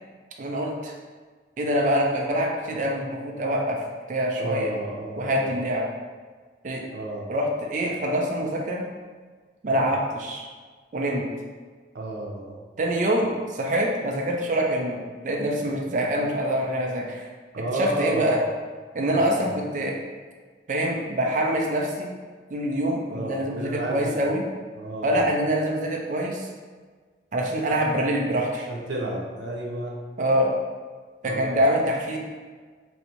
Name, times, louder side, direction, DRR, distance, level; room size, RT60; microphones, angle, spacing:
voice 1, 0.4-0.9 1.6-3.8 4.1-4.7 5.2-5.8 6.6-6.8 7.3-8.8 9.6-10.5 10.9-11.2 12.8-17.3 17.7-18.4 18.9-20.0 20.7-22.1 22.5-24.5 25.0-26.5 27.3-28.5 30.2-30.5 31.2-32.2, equal, 45° right, 0 dB, 0.4 m, -25 dB
voice 2, 4.4-5.6 6.9-7.3 9.7-9.9 11.9-12.6 17.5-18.4 19.1-19.5 23.1-24.2 24.7-25.3 28.5-30.0 31.2-31.6, right 1 dB, 85° right, -2 dB, 0.6 m, -32 dB
3.1 x 2.6 x 2.8 m, 1.5 s
head